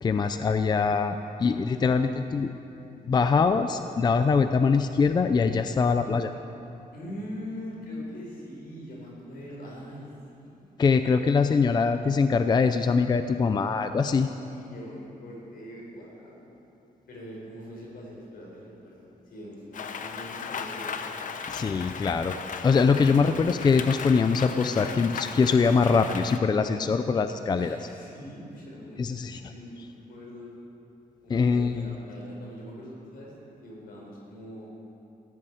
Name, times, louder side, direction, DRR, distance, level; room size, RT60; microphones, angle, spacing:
voice 1, 0.0-2.5 3.0-6.3 10.8-14.3 21.5-22.4 22.6-27.8 29.0-29.4 31.3-31.9, left 5 dB, 30° left, 9 dB, 0.4 m, -23 dB
voice 2, 1.0-2.5 6.9-10.9 14.4-16.4 17.1-20.9 27.5-29.0 29.5-30.5 31.2-33.3 33.6-34.7, equal, 80° left, -3 dB, 4.9 m, -43 dB
Rain, 19.7-26.4, left 6 dB, 60° left, 0.9 m, -37 dB
15.5 x 11.0 x 7.8 m, 2.8 s
wide cardioid pair, 165°, 15 cm